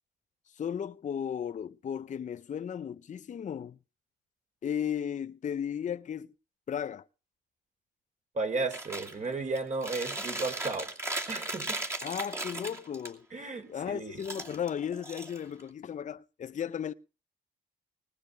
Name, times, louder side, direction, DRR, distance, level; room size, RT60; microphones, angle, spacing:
voice 1, 0.5-3.8 4.6-6.3 6.7-7.1 12.0-13.3 13.7-16.9, left 8 dB, 40° left, 0.6 m, -35 dB
voice 2, 8.3-10.9 11.3-11.8 13.3-14.2, right 3 dB, 35° right, 3.7 m, -34 dB
Chewing mastication, 8.7-9.1 9.6-13.1 14.2-15.7, right 2 dB, 15° right, 2.6 m, -37 dB
19.5 x 6.8 x 6.7 m
cardioid pair, 90°, 20 cm